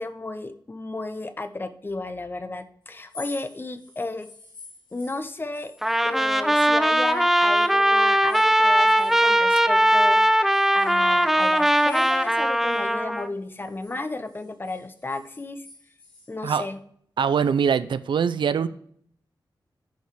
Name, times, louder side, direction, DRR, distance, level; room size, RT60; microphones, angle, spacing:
voice 1, 0.0-4.3 4.9-5.7 6.0-15.7 16.3-16.8, left 2 dB, 25° left, 10 dB, 0.8 m, -33 dB
sound 1, 3.0-7.2 7.5-10.1 10.5-12.8 13.2-16.7, left 3 dB, 85° left, 4.0 m, -49 dB
Trumpet, 5.8-13.3, right 1 dB, 5° right, 0.5 m, -20 dB
voice 2, 17.2-18.7, right 7 dB, 85° right, 14 dB, 0.5 m, -23 dB
10.5 x 5.5 x 4.7 m, 0.63 s
wide cardioid pair, 120°, 8 cm